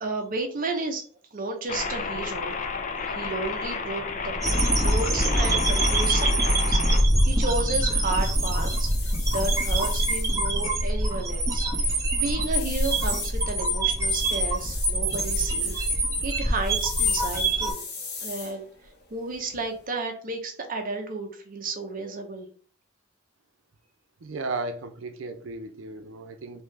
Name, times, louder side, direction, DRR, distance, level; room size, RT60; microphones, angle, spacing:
voice 1, 0.0-1.0 1.3-2.6 3.0-4.3 4.7-15.8 16.2-17.8 18.2-18.7 19.1-22.5, right 3 dB, 45° right, 0.7 m, -32 dB
sound 1, 1.7-7.0, left 4 dB, 40° left, 0.5 m, -31 dB
sound 2, 4.4-17.7, right 1 dB, 15° right, 1.0 m, -24 dB
sound 3, 6.9-19.9, left 4 dB, 60° left, 1.0 m, -41 dB
voice 2, 24.2-26.6, right 3 dB, 85° right, 0.6 m, -35 dB
3.6 x 2.7 x 3.2 m
head